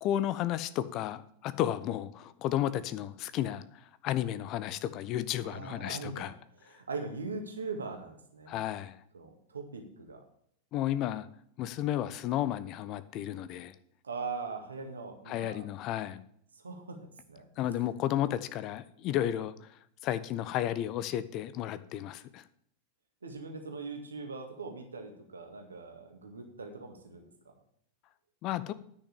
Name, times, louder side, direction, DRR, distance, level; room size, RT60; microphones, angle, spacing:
voice 1, 0.0-3.6 4.0-6.3 8.5-9.0 10.7-11.3 11.6-13.7 15.3-16.2 17.6-19.7 20.0-22.4 28.4-28.7, left 12 dB, 40° left, 14 dB, 0.7 m, -32 dB
voice 2, 5.4-8.7 9.1-10.3 14.0-15.7 16.5-17.0 17.3-17.5 17.8-17.9 23.2-27.5, right 4 dB, 75° right, 4 dB, 1.9 m, -41 dB
10.0 x 6.1 x 7.2 m, 0.68 s
figure-of-eight pair, 90°, 0 cm